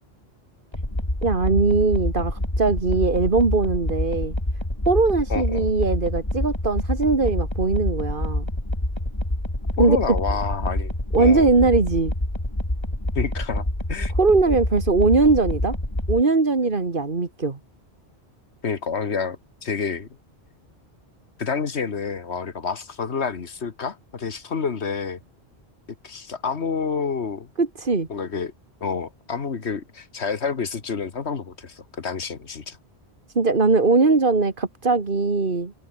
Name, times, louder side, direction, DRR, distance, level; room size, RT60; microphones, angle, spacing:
sound 1, 0.7-16.2, left 1 dB, 25° left, 4.0 m, -27 dB
voice 1, 1.2-4.3 4.9-8.4 9.8-10.0 11.1-12.1 14.2-15.8 16.1-17.6 27.6-28.1 33.4-35.7, right 3 dB, 50° right, 2.2 m, -20 dB
voice 2, 5.3-5.7 9.8-11.5 13.2-14.1 18.6-20.1 21.4-25.2 26.0-27.5 28.1-28.5 28.8-32.8, left 5 dB, 75° left, 1.9 m, -28 dB
omnidirectional pair, 1.1 m